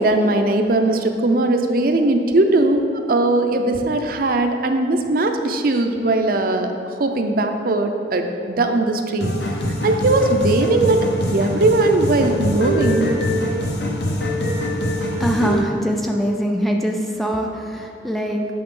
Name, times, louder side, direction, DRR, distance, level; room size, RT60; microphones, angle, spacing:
voice 1, 0.0-2.8 3.1-6.7 7.0-9.3 9.8-13.1, right 2 dB, 55° right, 5 dB, 0.5 m, -19 dB
sound 1, 9.2-15.6, left 1 dB, 70° left, 1.0 m, -23 dB
voice 2, 14.9-18.5, equal, ahead, 2 dB, 0.4 m, -23 dB
8.5 x 5.9 x 3.7 m, 2.5 s
head